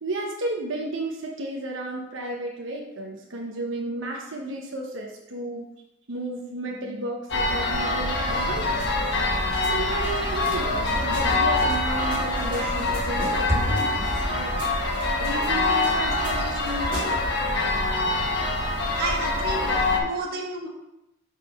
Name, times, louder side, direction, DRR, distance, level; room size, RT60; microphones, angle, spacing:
voice 1, 0.0-5.7 6.1-9.1 9.4-14.5 15.0-17.3, right 2 dB, 80° right, -1 dB, 1.0 m, -33 dB
sound 1, 7.3-20.0, left 2 dB, 60° left, 1.4 m, -25 dB
sound 2, 8.3-17.3, equal, 25° right, 2.3 m, -37 dB
voice 2, 18.9-20.7, right 2 dB, 50° right, -1 dB, 1.5 m, -31 dB
6.5 x 5.0 x 5.5 m, 0.91 s
head